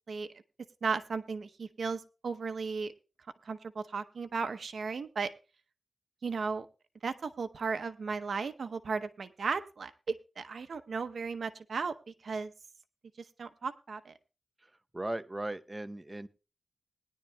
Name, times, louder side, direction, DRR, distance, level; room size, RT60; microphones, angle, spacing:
voice 1, 0.8-2.9 3.4-5.3 6.2-6.7 7.0-12.5 13.4-14.1, right 5 dB, 80° right, 9 dB, 0.7 m, -35 dB
voice 2, 14.6-16.3, right 1 dB, 20° right, 12 dB, 0.7 m, -38 dB
20.0 x 10.0 x 2.2 m, 0.31 s
wide cardioid pair, 75°, 0 cm